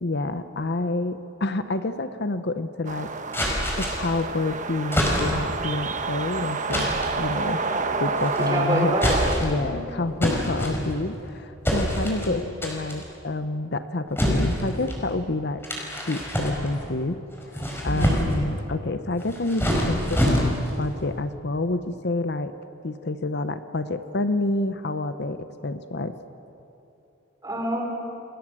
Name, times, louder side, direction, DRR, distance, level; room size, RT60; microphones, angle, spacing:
voice 1, 0.0-7.6 8.0-9.0 9.4-15.7 16.1-17.2 17.5-22.5 22.8-26.2, left 2 dB, 55° left, 10 dB, 0.9 m, -28 dB
sound 1, 2.8-9.3, right 4 dB, 40° right, 1.2 m, -29 dB
sound 2, 3.3-4.2 4.9-5.6 6.7-7.2 8.2-8.6 8.9-9.7 10.2-11.2 11.6-12.3 12.6-13.0 14.2-15.0 15.6-16.9 17.4-18.5 19.2-20.8, equal, 10° left, 4.9 m, -25 dB
voice 2, 7.5-8.0 8.5-9.7 12.3-12.4 17.8-18.3 27.4-27.8, equal, 20° right, 1 dB, 4.7 m, -28 dB
29.5 x 21.0 x 7.6 m, 2.8 s
head